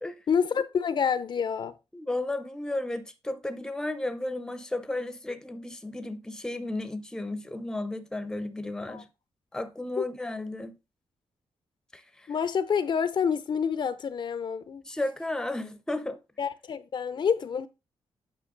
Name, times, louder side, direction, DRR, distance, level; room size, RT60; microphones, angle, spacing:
voice 1, 0.3-1.7 8.9-9.0 10.0-10.1 12.3-14.8 16.4-17.7, left 7 dB, 50° left, 0.6 m, -28 dB
voice 2, 1.9-9.1 9.5-10.7 11.9-12.3 14.9-16.2, left 2 dB, 5° left, 0.7 m, -33 dB
8.5 x 5.9 x 3.8 m
wide cardioid pair, 140°, 10 cm